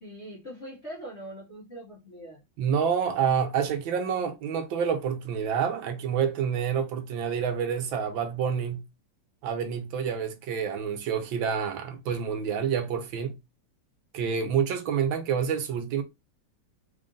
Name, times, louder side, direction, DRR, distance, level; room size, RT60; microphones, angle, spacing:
voice 1, 0.0-2.4, right 1 dB, 40° left, 1.1 m, -42 dB
voice 2, 2.6-8.8 9.4-13.3 14.1-16.0, right 7 dB, 75° right, 1.5 m, -28 dB
3.8 x 2.5 x 3.7 m
omnidirectional pair, 2.2 m